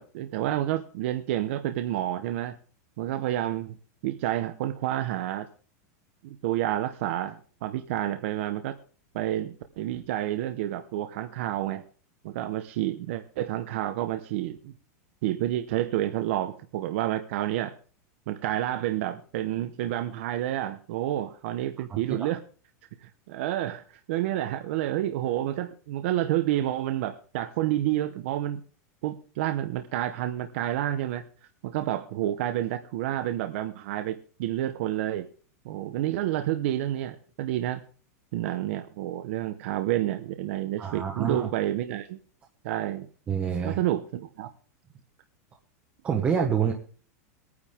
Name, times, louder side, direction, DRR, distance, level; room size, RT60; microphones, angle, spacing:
voice 1, 0.0-2.6 3.0-3.8 4.0-5.5 6.2-8.7 9.1-11.8 12.2-14.7 15.2-17.7 18.3-22.4 23.0-23.8 24.1-28.6 29.0-31.2 31.6-35.3 35.6-37.8 38.3-42.2 42.6-43.1 43.6-44.5, right 13 dB, 50° right, 9 dB, 1.0 m, -29 dB
voice 2, 21.9-22.3 40.8-41.5 43.3-43.8 46.0-46.7, right 7 dB, 15° right, 1 dB, 1.1 m, -27 dB
21.5 x 9.7 x 3.7 m, 0.41 s
supercardioid pair, 175°, 9 cm